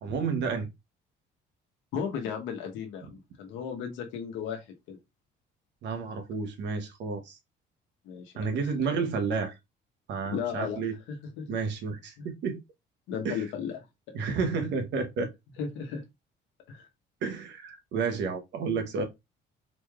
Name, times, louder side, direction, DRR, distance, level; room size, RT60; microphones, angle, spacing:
voice 1, 0.0-0.7 5.8-7.4 8.4-9.5 10.1-10.9 11.5-12.6 13.2-13.4 14.1-15.3 17.2-19.0, right 5 dB, 65° right, 0.9 m, -31 dB
voice 2, 1.9-5.0 8.0-8.7 10.3-10.8 11.1-11.5 12.2-12.3 13.1-13.8 15.6-16.0 16.7-16.9, left 7 dB, 85° left, 1.0 m, -35 dB
4.1 x 3.1 x 2.3 m
cardioid pair, 120°, 19 cm